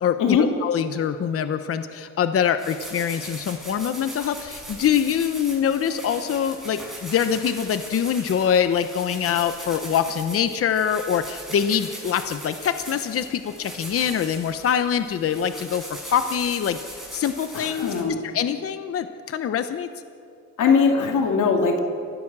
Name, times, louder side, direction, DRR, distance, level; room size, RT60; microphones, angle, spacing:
voice 1, 0.0-17.9 18.2-19.9, left 8 dB, 50° left, 10 dB, 0.9 m, -24 dB
sound 1, 2.6-18.0, right 1 dB, ahead, 6.8 m, -39 dB
voice 2, 17.5-18.2 20.6-21.8, left 5 dB, 90° left, 3 dB, 2.6 m, -20 dB
30.0 x 15.5 x 7.4 m, 2.5 s
cardioid pair, 150°, 30 cm